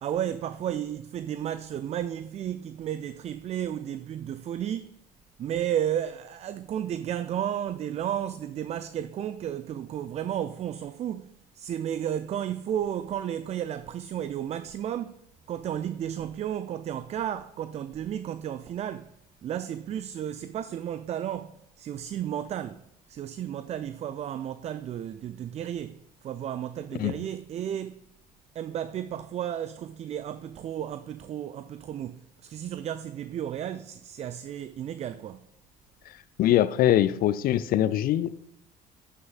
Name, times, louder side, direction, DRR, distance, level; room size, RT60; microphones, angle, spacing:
voice 1, 0.0-4.9 5.4-15.2 15.5-19.1 19.4-22.8 23.1-28.0 28.5-35.4, right 10 dB, 30° right, 0.3 m, -33 dB
voice 2, 36.4-38.3, left 12 dB, 45° left, 0.5 m, -22 dB
12.5 x 6.3 x 2.4 m
figure-of-eight pair, 55°, 21 cm